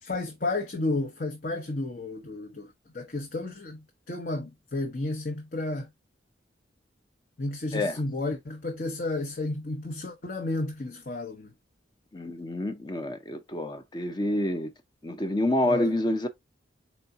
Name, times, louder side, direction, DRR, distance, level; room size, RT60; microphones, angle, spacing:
voice 1, 0.0-5.9 7.4-11.5 15.6-15.9, left 2 dB, 50° left, 0.9 m, -32 dB
voice 2, 12.1-14.7 15.0-16.3, left 1 dB, 25° left, 0.6 m, -28 dB
4.6 x 4.2 x 2.5 m
head